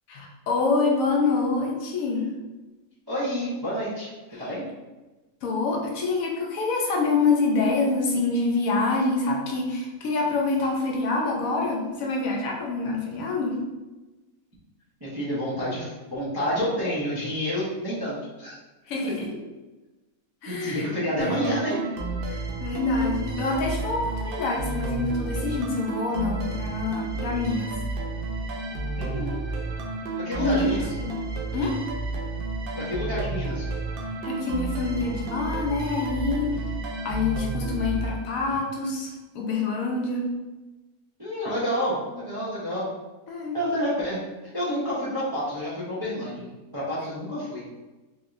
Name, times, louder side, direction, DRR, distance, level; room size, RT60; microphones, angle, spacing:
voice 1, 0.1-2.3 4.3-4.4 5.4-13.6 18.9-19.3 20.4-21.8 22.3-27.7 30.3-31.2 31.5-31.7 34.2-36.5 37.0-40.3 43.3-43.6, left 3 dB, 70° left, -1 dB, 1.0 m, -26 dB
voice 2, 3.1-4.1 4.4-4.6 15.0-18.6 20.4-21.8 29.0-29.4 30.2-30.8 32.7-33.7 41.2-42.9 43.5-44.2 44.5-47.6, equal, 25° right, -8 dB, 0.5 m, -29 dB
sound 1, 21.2-38.7, right 3 dB, 85° right, 0.4 m, -31 dB
3.2 x 2.8 x 2.4 m, 1.1 s
omnidirectional pair, 1.5 m